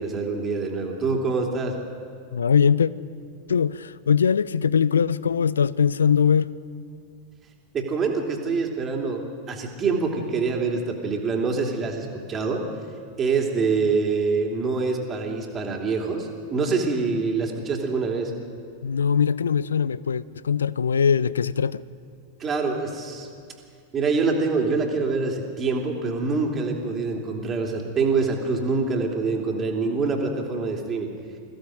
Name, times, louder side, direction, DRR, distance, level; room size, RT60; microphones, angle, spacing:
voice 1, 0.0-1.8 7.7-12.6 13.2-18.3 22.4-23.3 23.9-31.1, right 4 dB, 25° right, 2.9 m, -25 dB
voice 2, 2.3-2.9 3.5-6.5 18.8-21.8, left 7 dB, 70° left, 0.5 m, -21 dB
22.0 x 15.5 x 7.8 m
figure-of-eight pair, 90°, 0 cm